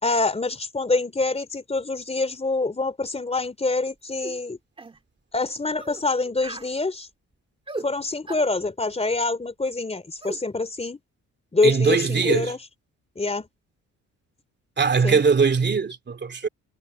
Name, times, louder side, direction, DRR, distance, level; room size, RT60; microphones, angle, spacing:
voice 1, 0.0-4.6 5.3-7.1 7.8-11.0 11.5-12.6 13.2-13.5 15.0-15.2, left 3 dB, 20° left, 3.5 m, -25 dB
sound 1, 4.2-4.4 4.8-5.0 5.8-6.0 6.4-6.7 7.7-7.9 8.3-8.5 10.2-10.4, right 2 dB, 20° right, 2.3 m, -36 dB
voice 2, 11.6-12.5 14.8-16.5, right 5 dB, 35° right, 2.8 m, -21 dB
cardioid pair, 90°, 30 cm